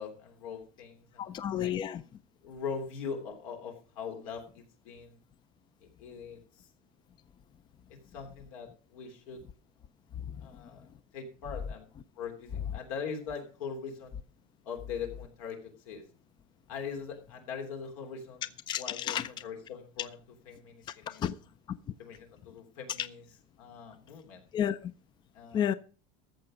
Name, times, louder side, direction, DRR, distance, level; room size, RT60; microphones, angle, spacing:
voice 1, 0.0-1.3 1.6-1.7 2.4-5.2 5.8-6.7 7.9-9.4 10.4-10.9 11.1-11.9 12.2-14.2 14.6-16.0 16.7-18.5 18.8-20.1 20.5-21.2 22.0-23.2 23.6-24.4 25.3-25.8, left 6 dB, 85° left, 3.3 m, -41 dB
voice 2, 1.2-2.0 10.2-10.4 18.7-19.3 20.9-21.3 23.0-23.1 24.5-24.9 25.5-25.7, left 10 dB, 25° left, 0.5 m, -32 dB
14.0 x 7.0 x 5.1 m
cardioid pair, 145°, 17 cm